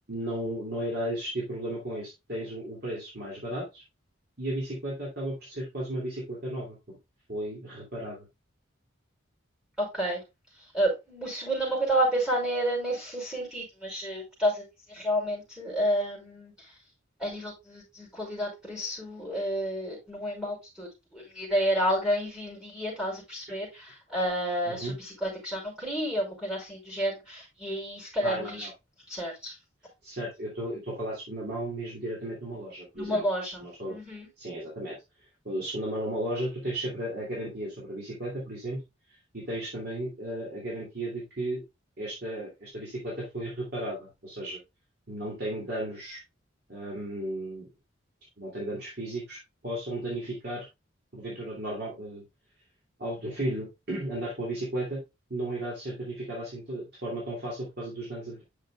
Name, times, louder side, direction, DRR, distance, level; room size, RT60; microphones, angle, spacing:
voice 1, 0.1-3.8 4.4-6.8 7.3-8.3 24.7-24.9 28.2-28.7 30.0-33.2 33.6-33.9 34.4-35.0 35.4-38.8 39.3-41.6 42.0-44.6 45.1-46.2 46.7-47.7 48.4-49.4 49.6-50.7 51.1-52.3 53.0-55.0 55.3-58.4, right 1 dB, 55° right, -5 dB, 2.8 m, -34 dB
voice 2, 9.8-10.2 10.6-16.8 17.2-28.7 29.1-29.6 32.9-34.3, equal, 5° right, -2 dB, 5.3 m, -30 dB
9.5 x 6.6 x 2.4 m, 0.23 s
head